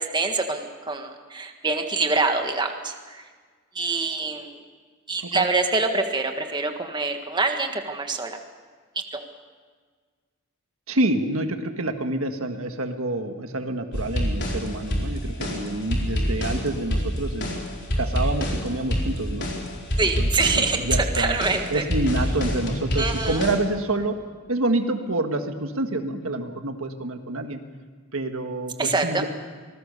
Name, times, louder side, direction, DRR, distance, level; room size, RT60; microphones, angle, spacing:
voice 1, 0.0-3.2 3.7-4.5 5.1-8.4 20.0-21.8 23.0-23.4 28.8-29.2, right 3 dB, 20° right, 4 dB, 1.7 m, -25 dB
voice 2, 10.9-17.5 18.0-19.5 20.0-20.3 20.6-21.4 21.7-24.2 24.5-27.6 28.1-29.3, right 2 dB, 80° right, 6 dB, 1.7 m, -27 dB
sound 1, 13.9-23.6, equal, 55° left, 4.5 m, -27 dB
26.0 x 20.0 x 6.9 m, 1.5 s
head